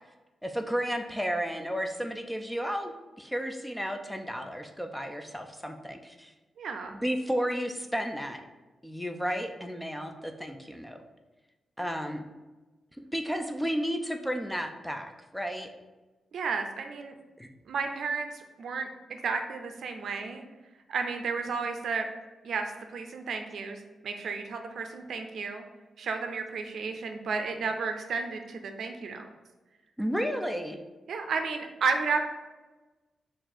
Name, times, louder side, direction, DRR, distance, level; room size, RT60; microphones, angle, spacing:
voice 1, 0.4-2.9 3.2-6.3 6.9-8.4 8.8-11.0 11.8-12.2 13.1-15.7 17.4-17.5 30.0-30.8, equal, ahead, 5 dB, 0.3 m, -32 dB
voice 2, 6.6-7.0 16.3-17.2 17.7-20.4 20.9-22.1 22.4-25.7 26.0-29.3 31.1-32.2, right 5 dB, 70° right, 5 dB, 0.5 m, -32 dB
4.3 x 2.5 x 4.2 m, 1.2 s
wide cardioid pair, 145°, 0 cm